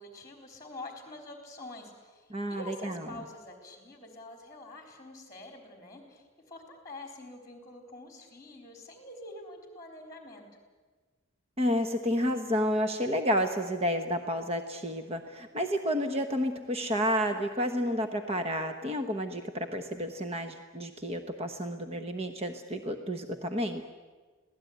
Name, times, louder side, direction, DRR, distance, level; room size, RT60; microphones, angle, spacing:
voice 1, 0.0-10.5, left 2 dB, 15° left, 4 dB, 4.0 m, -46 dB
voice 2, 2.3-2.9 11.6-23.9, equal, 30° right, 7 dB, 1.1 m, -30 dB
25.5 x 17.5 x 9.4 m, 1.4 s
head